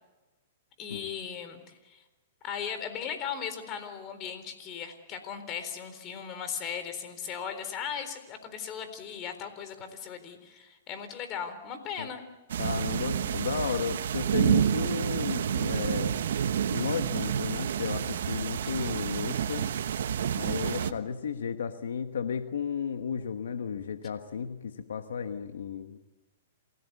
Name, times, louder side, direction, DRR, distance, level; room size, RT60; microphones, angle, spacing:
voice 1, 0.8-2.0 2.4-12.2 18.6-18.9 20.6-21.0, left 7 dB, 35° left, 9 dB, 4.0 m, -38 dB
sound 1, 12.5-20.9, right 9 dB, 75° right, 1.1 m, -29 dB
voice 2, 12.6-16.2 16.7-19.7 20.4-26.0, left 7 dB, 85° left, 9 dB, 1.3 m, -33 dB
28.0 x 17.0 x 8.3 m, 1.1 s
hypercardioid pair, 135°, 0 cm